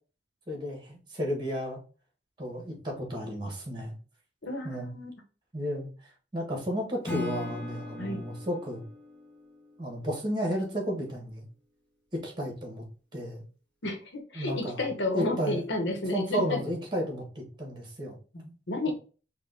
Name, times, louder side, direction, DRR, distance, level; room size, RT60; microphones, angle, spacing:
voice 1, 0.5-1.8 2.4-3.9 4.6-4.9 5.5-8.9 9.8-11.4 12.1-12.8 13.1-13.4 14.3-14.8 15.1-15.6 16.1-18.2, equal, 25° right, 0 dB, 1.4 m, -33 dB
voice 2, 4.4-5.1 8.0-8.2 13.8-16.6 18.3-18.9, left 2 dB, 75° left, 3 dB, 1.1 m, -32 dB
Acoustic guitar / Strum, 7.0-10.2, left 3 dB, 10° left, 1.3 m, -40 dB
4.2 x 2.4 x 3.8 m, 0.37 s
head